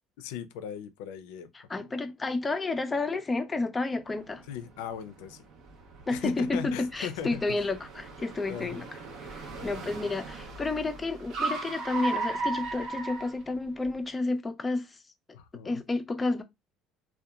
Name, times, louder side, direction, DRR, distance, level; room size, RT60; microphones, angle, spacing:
voice 1, 0.2-1.5 4.5-5.4 6.1-7.6 8.5-8.8 9.2-10.1 15.3-15.8, left 9 dB, 90° left, 0.4 m, -39 dB
voice 2, 1.5-4.4 6.1-8.9 9.2-14.9 15.6-16.4, left 3 dB, 15° left, 0.4 m, -31 dB
Car, 4.1-13.9, right 3 dB, 55° right, 0.6 m, -37 dB
2.8 x 2.2 x 2.2 m
cardioid pair, 120°, 0 cm